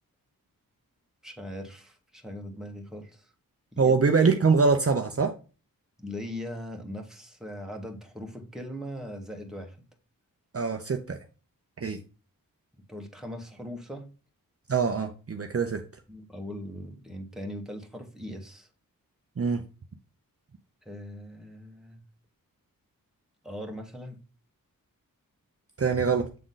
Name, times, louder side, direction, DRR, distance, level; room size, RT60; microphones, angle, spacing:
voice 1, 1.2-3.3 3.7-4.0 6.0-9.9 12.9-14.1 16.1-18.7 20.8-22.0 23.4-24.2, equal, ahead, 2 dB, 1.6 m, -40 dB
voice 2, 3.8-5.3 10.5-11.2 11.8-12.0 14.7-15.8 19.4-19.6 25.8-26.3, right 5 dB, 40° right, 5 dB, 0.7 m, -23 dB
7.7 x 3.8 x 3.9 m, 0.34 s
cardioid pair, 65°, 35 cm